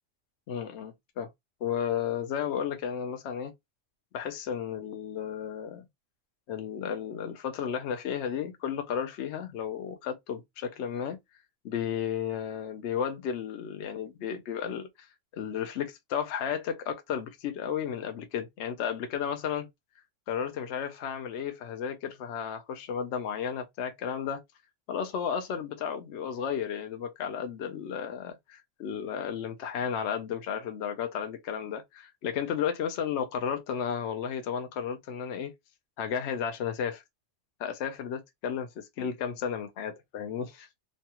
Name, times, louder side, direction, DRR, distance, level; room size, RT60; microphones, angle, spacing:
voice 1, 0.5-1.3 1.6-3.5 4.1-5.9 6.5-11.2 11.6-14.9 15.3-19.7 20.3-24.4 24.9-35.5 36.0-37.0 37.6-40.7, left 8 dB, 70° left, 0.8 m, -33 dB
3.1 x 2.3 x 2.8 m
omnidirectional pair, 1.3 m